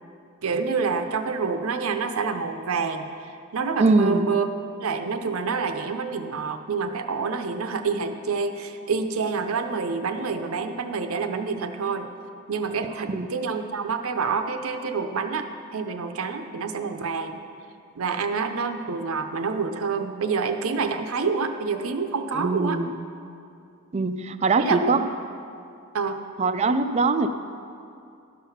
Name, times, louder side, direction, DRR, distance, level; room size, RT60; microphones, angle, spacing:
voice 1, 0.4-4.5 4.8-12.1 12.5-17.4 18.0-22.8 24.6-25.1 25.9-26.2, right 5 dB, 70° right, 7 dB, 0.6 m, -27 dB
voice 2, 3.8-4.3 13.1-13.3 22.3-23.0 23.9-25.0 26.4-27.3, right 3 dB, 30° right, 10 dB, 0.3 m, -22 dB
12.5 x 5.7 x 5.7 m, 2.5 s
head